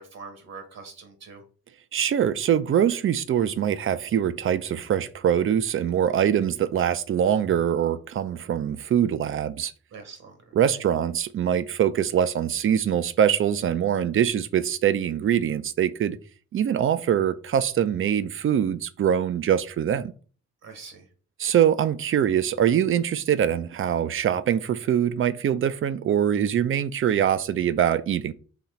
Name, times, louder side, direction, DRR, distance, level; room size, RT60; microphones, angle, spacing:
voice 1, 0.0-1.4 9.9-10.5 20.6-21.1, right 4 dB, 60° right, 1.3 m, -43 dB
voice 2, 1.9-9.7 10.5-16.2 16.5-20.1 21.4-28.3, right 9 dB, 45° right, 0.5 m, -23 dB
4.1 x 3.0 x 4.3 m
cardioid pair, 90°, 30 cm